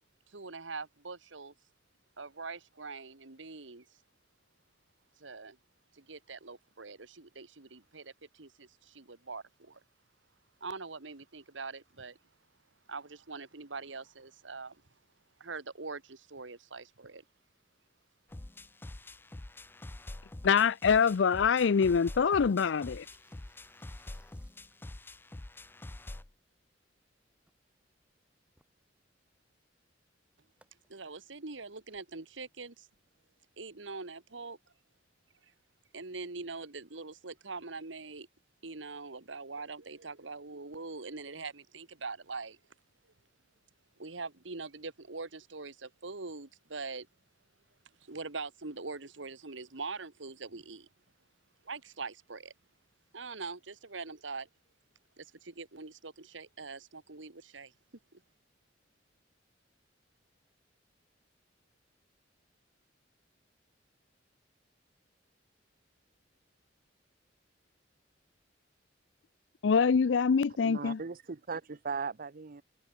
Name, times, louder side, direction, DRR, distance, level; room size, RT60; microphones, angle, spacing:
voice 1, 0.3-1.5 2.2-3.8 5.2-5.6 5.9-9.8 10.6-12.2 12.9-14.8 15.4-17.2 30.9-32.9 33.6-34.6 35.9-38.3 38.6-42.6 44.0-47.1 48.0-50.9 51.6-52.5 53.1-54.5 55.2-57.7 58.1-58.2, right 4 dB, 75° right, 1.7 m, -43 dB
sound 1, 18.3-26.3, left 1 dB, 10° left, 0.4 m, -46 dB
voice 2, 20.4-23.1 69.6-71.0, left 6 dB, 70° left, 0.4 m, -25 dB
sound 2, 22.0-33.6, right 1 dB, 5° right, 7.7 m, -74 dB
voice 3, 70.6-72.6, right 5 dB, 50° right, 0.7 m, -38 dB
head